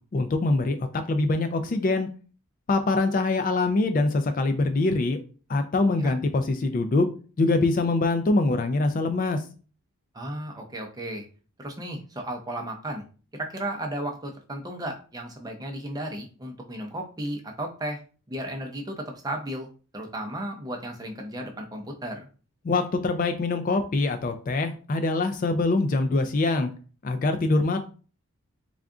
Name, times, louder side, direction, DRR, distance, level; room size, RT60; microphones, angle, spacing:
voice 1, 0.1-0.8 1.1-2.1 2.7-5.2 5.5-7.1 7.4-9.4 22.6-26.7 27.0-27.8, left 2 dB, 35° left, 7 dB, 0.3 m, -24 dB
voice 2, 10.1-11.3 11.6-13.0 13.3-18.0 18.3-19.7 19.9-22.3, right 1 dB, 15° right, 3 dB, 0.5 m, -34 dB
3.5 x 2.3 x 3.7 m, 0.38 s
head